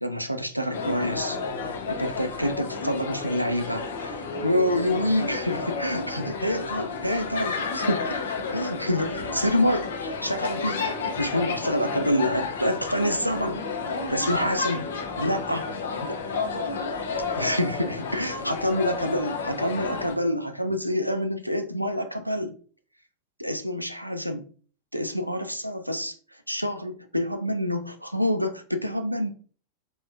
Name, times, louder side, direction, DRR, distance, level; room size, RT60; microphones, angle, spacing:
voice 1, 0.0-1.4 2.0-4.1 4.4-8.0 8.5-10.9 11.2-13.6 14.1-14.9 15.2-15.6 16.0-16.2 17.4-22.5 23.4-24.4 24.9-29.3, equal, 90° right, 0.3 m, -27 dB
sound 1, 0.7-20.2, left 4 dB, 60° left, 0.4 m, -31 dB
voice 2, 1.0-1.9 2.8-3.5 4.2-5.2 6.7-7.2 14.3-16.0 18.1-18.4, left 2 dB, 45° left, 0.9 m, -41 dB
3.4 x 2.2 x 2.4 m
figure-of-eight pair, 90°, 0 cm